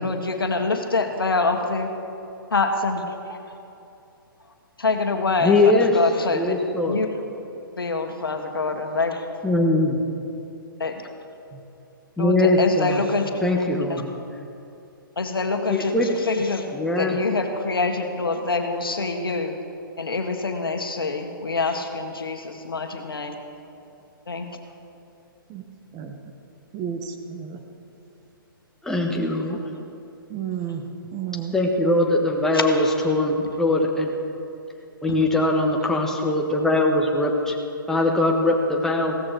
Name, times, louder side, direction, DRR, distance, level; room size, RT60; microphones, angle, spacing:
voice 1, 0.0-1.9 2.5-3.4 4.8-6.6 6.8-7.4 7.8-9.2 10.8-11.0 12.2-14.0 15.2-16.7 17.0-19.6 20.0-23.3 24.3-24.5 29.5-29.6 32.5-32.6, left 3 dB, 80° left, 5 dB, 1.6 m, -26 dB
voice 2, 5.4-5.9 6.3-7.0 9.4-10.0 12.2-13.0 13.4-14.1 15.7-16.2 16.7-17.2 28.8-29.6 31.5-34.1 35.0-37.5 37.9-39.2, left 2 dB, 5° left, 0 dB, 1.4 m, -21 dB
voice 3, 26.7-27.6 30.3-30.8 31.1-31.5, right 8 dB, 25° right, 5 dB, 1.4 m, -32 dB
16.5 x 14.0 x 4.7 m, 2.8 s
figure-of-eight pair, 125°, 12 cm